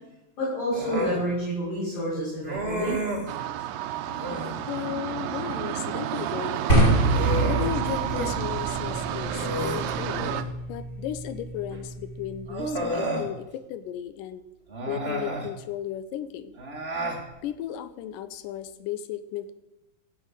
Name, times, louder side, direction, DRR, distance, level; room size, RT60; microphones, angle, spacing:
voice 1, 0.4-3.0, equal, 40° left, -12 dB, 6.8 m, -29 dB
Human voice, 0.7-1.2 2.4-3.3 4.1-4.6 6.5-8.3 8.7-8.8 9.3-10.5 11.7-11.8 12.5-13.3 14.7-15.5 16.6-17.2, right 1 dB, 35° right, 0.9 m, -31 dB
sound 1, 3.3-10.4, right 11 dB, 80° right, 2.2 m, -31 dB
voice 2, 4.6-6.6 7.4-10.3 10.7-14.5 14.9-16.6 17.4-19.5, left 10 dB, 75° left, 12 dB, 2.2 m, -35 dB
sound 2, 6.7-12.8, right 2 dB, 20° left, 2.1 m, -27 dB
14.5 x 6.3 x 8.0 m, 0.95 s
omnidirectional pair, 4.2 m